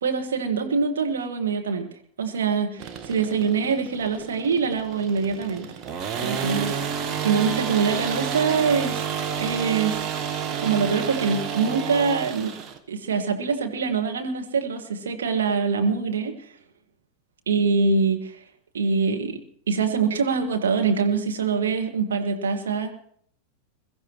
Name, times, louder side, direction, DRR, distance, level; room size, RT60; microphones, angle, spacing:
voice 1, 0.0-1.9 2.2-5.7 6.2-6.8 7.2-9.0 9.4-10.0 10.6-12.6 12.9-16.3 17.5-18.4 18.7-19.4 19.7-22.9, right 5 dB, 65° right, 3 dB, 1.8 m, -24 dB
sound 1, 2.8-12.8, right 7 dB, 30° right, 1.3 m, -30 dB
22.0 x 14.0 x 3.1 m, 0.62 s
figure-of-eight pair, 90°, 0 cm